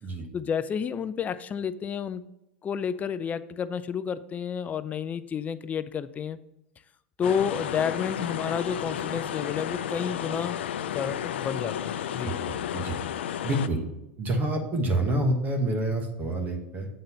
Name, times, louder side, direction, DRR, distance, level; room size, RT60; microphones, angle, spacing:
voice 1, 0.3-2.3 2.6-6.4 7.2-10.6 10.9-12.4, left 7 dB, 25° left, 14 dB, 0.4 m, -30 dB
sound 1, 7.2-13.7, left 10 dB, 85° left, 0.4 m, -32 dB
voice 2, 12.2-13.0 13.4-13.8 14.2-16.9, right 1 dB, 30° right, 3 dB, 1.3 m, -28 dB
8.0 x 4.0 x 5.5 m, 0.91 s
supercardioid pair, 115°, 6 cm